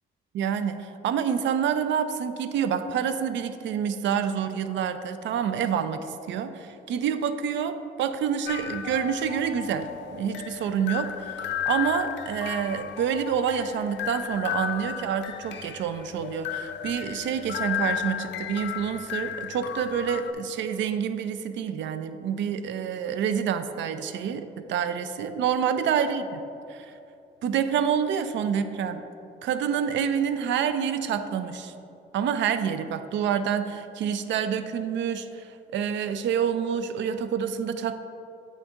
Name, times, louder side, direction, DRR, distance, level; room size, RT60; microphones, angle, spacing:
voice 1, 0.3-26.4 26.7-27.0 27.4-29.0 29.4-31.7 32.1-38.0, right 8 dB, 70° right, 10 dB, 0.4 m, -28 dB
sound 1, 8.5-20.3, left 10 dB, 65° left, 0.4 m, -34 dB
8.7 x 3.9 x 3.6 m, 2.8 s
cardioid pair, 90°, 20 cm